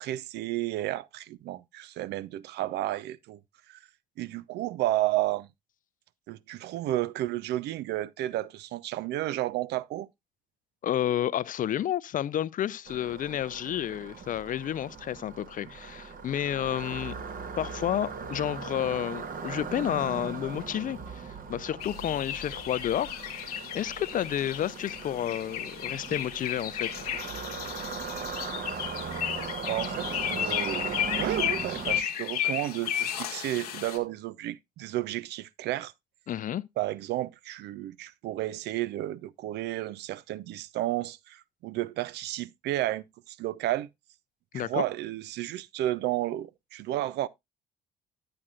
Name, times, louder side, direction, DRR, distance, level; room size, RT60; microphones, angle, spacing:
voice 1, 0.0-3.4 3.7-3.8 4.2-5.5 6.3-10.1 29.6-35.9 36.8-43.9 44.5-47.3, right 15 dB, 65° right, 0.5 m, -32 dB
voice 2, 10.8-17.1 17.6-27.0 36.3-36.6 44.5-44.8, left 11 dB, 45° left, 0.5 m, -31 dB
sound 1, 12.9-32.0, right 5 dB, 45° right, 1.4 m, -39 dB
sound 2, 21.8-34.0, left 10 dB, 90° left, 0.9 m, -34 dB
9.7 x 8.7 x 2.4 m
hypercardioid pair, 50°, 19 cm